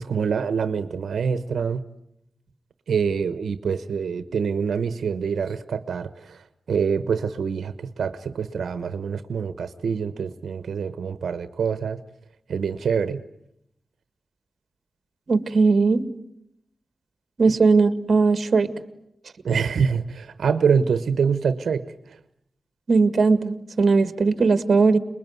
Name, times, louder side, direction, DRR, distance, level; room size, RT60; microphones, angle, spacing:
voice 1, 0.0-1.8 2.9-12.0 12.5-13.2 17.4-17.5 19.4-22.2, right 6 dB, 85° right, 11 dB, 1.1 m, -25 dB
voice 2, 15.3-16.0 17.4-18.7 22.9-25.0, right 4 dB, 50° right, 11 dB, 1.8 m, -18 dB
28.5 x 21.5 x 9.5 m, 0.80 s
wide cardioid pair, 155°, 0 cm